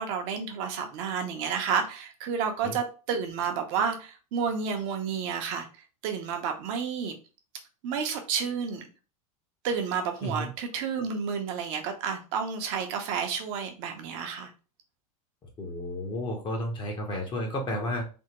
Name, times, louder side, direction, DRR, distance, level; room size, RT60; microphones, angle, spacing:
voice 1, 0.0-5.7 6.0-7.1 7.8-8.9 9.6-14.5, right 6 dB, 55° right, 5 dB, 0.8 m, -30 dB
voice 2, 15.6-18.0, left 1 dB, 25° left, 2 dB, 0.7 m, -32 dB
3.4 x 2.1 x 2.9 m, 0.34 s
supercardioid pair, 120°, 19 cm